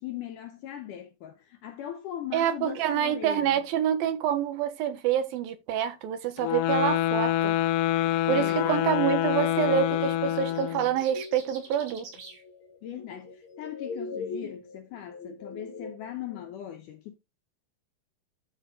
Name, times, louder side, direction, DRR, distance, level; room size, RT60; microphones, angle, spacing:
voice 1, 0.0-3.6 8.3-8.8 12.8-17.2, left 11 dB, 70° left, 2.2 m, -39 dB
voice 2, 2.3-7.6 8.3-12.1, right 9 dB, 75° right, 3.0 m, -27 dB
sound 1, 6.4-10.9, left 13 dB, 90° left, 1.8 m, -26 dB
sound 2, 9.3-16.5, left 4 dB, 50° left, 1.7 m, -42 dB
sound 3, 10.3-12.4, right 4 dB, 50° right, 4.4 m, -47 dB
12.0 x 5.1 x 3.8 m
omnidirectional pair, 4.3 m